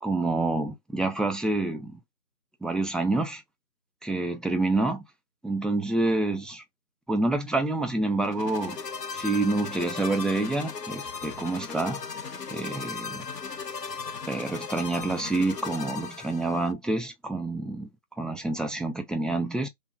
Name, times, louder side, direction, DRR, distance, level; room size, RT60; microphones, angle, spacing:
voice 1, 0.0-2.0 2.6-3.4 4.0-5.0 5.4-6.6 7.1-8.8 9.1-12.0 12.5-13.3 14.3-17.9 18.2-19.7, right 2 dB, ahead, 0.4 m, -27 dB
sound 1, 8.2-16.7, left 5 dB, 80° left, 0.8 m, -37 dB
3.3 x 2.2 x 2.4 m
figure-of-eight pair, 175°, 48 cm